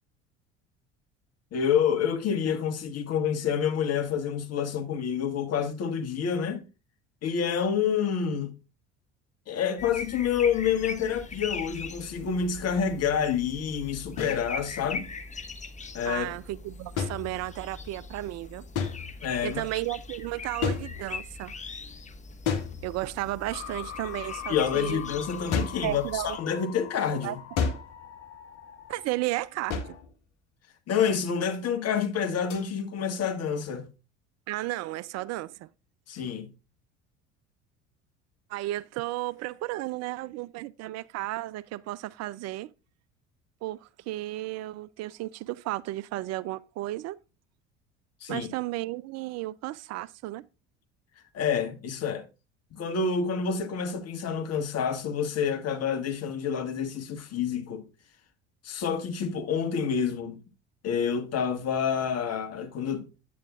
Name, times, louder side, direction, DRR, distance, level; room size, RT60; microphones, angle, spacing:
voice 1, 1.5-6.6 7.2-8.5 9.5-15.1 15.9-16.3 19.2-19.6 24.5-27.4 30.9-33.9 36.1-36.5 48.2-48.5 51.3-52.2 52.7-57.8 58.6-60.4 60.8-63.1, left 7 dB, 45° left, 1.5 m, -28 dB
sound 1, 9.8-26.4, left 4 dB, 20° left, 1.0 m, -41 dB
sound 2, 14.2-14.4 17.0-17.8 18.8-19.4 20.6-21.4 22.5-23.3 25.5-25.9 27.6-28.1 29.7-30.1 32.5-32.7, left 6 dB, 60° left, 1.5 m, -31 dB
voice 2, 16.0-18.6 19.4-21.5 22.8-25.0 25.8-26.4 27.2-27.4 28.9-30.0 34.5-35.7 38.5-42.7 43.6-47.2 48.3-50.4, right 17 dB, 50° right, 0.4 m, -33 dB
sound 3, 23.5-30.0, left 10 dB, 80° left, 1.0 m, -42 dB
9.2 x 8.4 x 2.4 m
hypercardioid pair, 65°, 35 cm